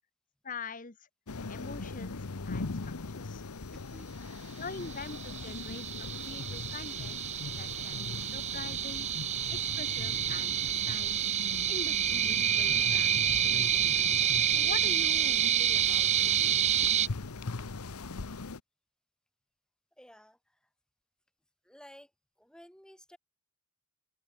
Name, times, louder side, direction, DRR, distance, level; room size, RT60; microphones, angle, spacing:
voice 1, 0.4-1.1 1.5-3.4 4.6-7.2 7.5-9.1 9.5-11.3 11.7-14.1 14.5-16.5, left 4 dB, 35° left, 1.3 m, -44 dB
sound 1, 1.3-18.6, left 3 dB, 90° left, 1.0 m, -40 dB
voice 2, 3.7-4.1 20.0-20.6 21.6-22.1 22.4-23.2, equal, 5° left, 6.5 m, -54 dB
sound 2, 4.9-17.1, right 9 dB, 30° right, 0.4 m, -28 dB
open air
head